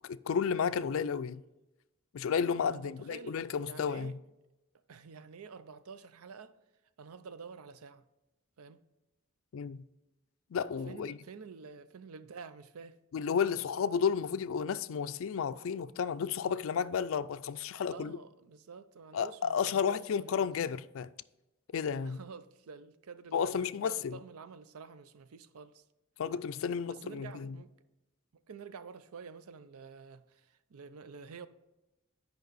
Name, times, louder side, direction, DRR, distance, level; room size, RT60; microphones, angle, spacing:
voice 1, 0.1-1.4 2.1-4.1 9.5-9.8 10.5-11.2 13.1-18.2 19.1-21.1 21.7-22.2 23.3-24.2 26.2-27.6, left 6 dB, 70° left, 0.3 m, -32 dB
voice 2, 2.7-4.2 4.9-6.6 7.0-8.0 8.6-8.8 10.9-13.0 17.9-20.5 22.0-25.8 26.8-27.7 28.3-31.5, right 5 dB, 85° right, 0.5 m, -49 dB
9.2 x 5.3 x 4.0 m
head